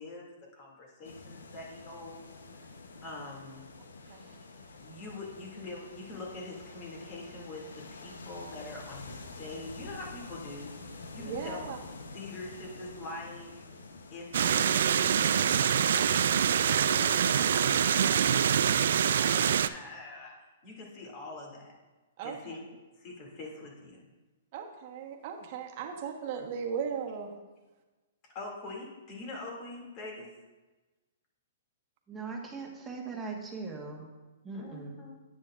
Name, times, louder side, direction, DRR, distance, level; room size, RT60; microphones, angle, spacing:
voice 1, 0.0-2.2 2.5-2.7 3.0-3.7 4.8-10.7 11.1-11.7 12.1-13.6 14.1-14.9 15.2-15.6 15.9-20.3 20.6-21.7 22.2-22.6 23.0-24.0 28.3-30.3 34.5-35.1, left 2 dB, 35° left, -1 dB, 2.4 m, -44 dB
sound 1, 1.0-17.9, left 3 dB, 90° left, 0.9 m, -48 dB
voice 2, 4.1-4.4 11.2-11.8 22.2-22.6 24.5-27.3, right 6 dB, 45° right, 3 dB, 1.2 m, -37 dB
sound 2, 14.3-19.7, right 8 dB, 70° right, 0.3 m, -25 dB
voice 3, 32.1-34.1 34.4-35.0, right 4 dB, 10° right, -1 dB, 1.4 m, -40 dB
9.7 x 8.4 x 2.5 m, 1.2 s
hypercardioid pair, 135°, 0 cm